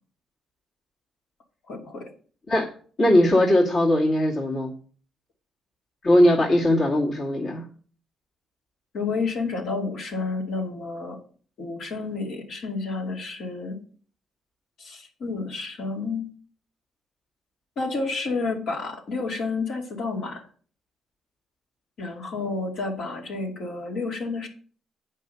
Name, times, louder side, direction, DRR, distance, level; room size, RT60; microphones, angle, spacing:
voice 1, 1.7-2.1 8.9-11.2 11.6-13.8 14.8-16.3 17.8-20.5 22.0-24.5, left 3 dB, 70° left, 0 dB, 2.4 m, -30 dB
voice 2, 3.0-4.7 6.0-7.6, left 1 dB, 50° left, -2 dB, 2.3 m, -19 dB
8.6 x 5.5 x 5.6 m, 0.43 s
cardioid pair, 90°, 0 cm